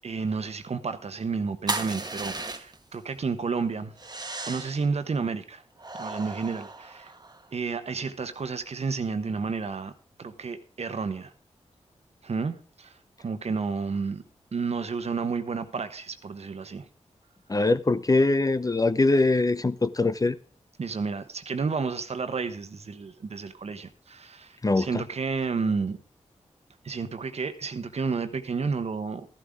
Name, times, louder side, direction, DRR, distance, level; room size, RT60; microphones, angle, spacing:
voice 1, 0.0-3.9 4.5-5.6 5.9-7.1 7.5-9.9 10.2-11.3 12.2-13.0 13.2-14.2 14.5-16.9 20.8-26.0 26.8-29.3, right 4 dB, 65° right, 1.1 m, -31 dB
sound 1, 1.7-2.9 4.0-4.9 5.8-7.5, right 3 dB, 35° right, 1.2 m, -35 dB
voice 2, 17.5-20.3 24.6-25.0, left 2 dB, 30° left, 0.7 m, -22 dB
13.0 x 11.5 x 3.7 m
cardioid pair, 45°, 12 cm